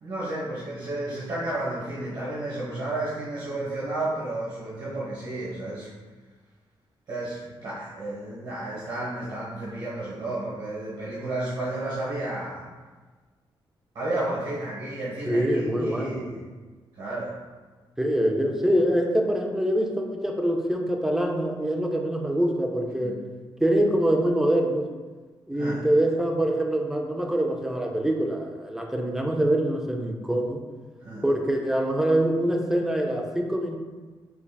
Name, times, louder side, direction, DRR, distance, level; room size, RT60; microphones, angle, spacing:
voice 1, 0.0-5.9 7.1-12.6 13.9-16.4 17.0-17.3 23.0-23.2 25.5-25.9 31.0-31.2, right 2 dB, 60° right, -10 dB, 1.1 m, -32 dB
voice 2, 15.3-16.3 18.0-23.2 23.6-24.8 25.5-30.6 31.2-33.8, right 1 dB, 5° right, 1 dB, 0.3 m, -24 dB
3.7 x 3.3 x 2.2 m, 1.3 s
wide cardioid pair, 160°, 9 cm